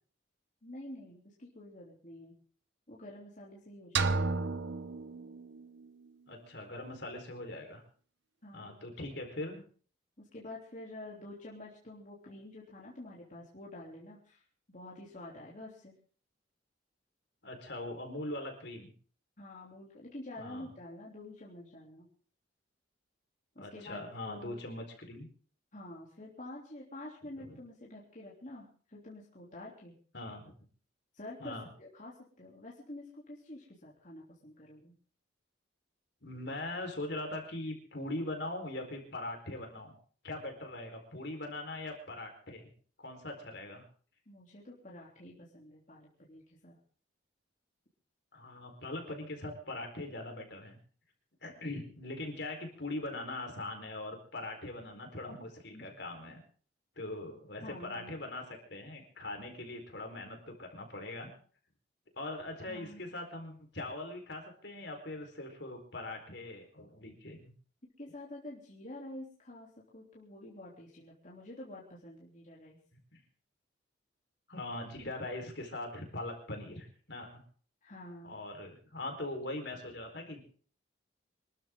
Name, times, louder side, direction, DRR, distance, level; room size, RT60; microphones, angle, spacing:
voice 1, 0.6-2.4 2.9-4.5 8.4-8.8 10.2-14.4 14.7-15.9 19.4-22.1 23.5-24.6 25.7-30.0 31.1-34.9 44.3-46.8 55.7-55.8 57.6-58.2 62.6-63.1 68.0-72.8 77.8-78.3, left 1 dB, 40° left, -4 dB, 3.3 m, -48 dB
sound 1, 4.0-5.9, right 4 dB, 65° right, 1.0 m, -33 dB
voice 2, 6.3-7.8 8.5-9.6 17.4-18.9 20.4-20.7 23.6-25.3 27.4-27.6 30.1-30.5 31.4-31.7 36.2-39.9 40.2-42.7 43.0-43.8 48.3-50.8 51.4-56.4 57.0-61.3 62.2-67.5 73.1-73.2 74.5-77.4 78.2-80.4, left 2 dB, 60° left, 3 dB, 4.5 m, -41 dB
25.0 x 13.5 x 3.8 m, 0.43 s
head